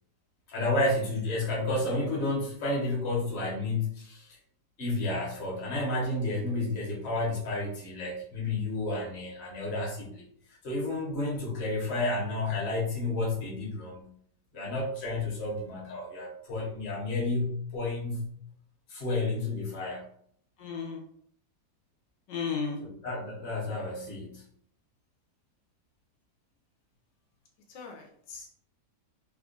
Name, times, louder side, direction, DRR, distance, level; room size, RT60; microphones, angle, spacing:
voice 1, 0.5-4.4 4.8-10.2 10.6-14.1 14.5-18.3 18.9-20.0 22.8-24.4, left 2 dB, 40° left, -4 dB, 1.2 m, -31 dB
voice 2, 20.6-21.0 22.3-22.8 27.7-28.5, left 5 dB, 85° left, 1 dB, 1.4 m, -35 dB
3.4 x 2.3 x 3.8 m, 0.64 s
omnidirectional pair, 1.8 m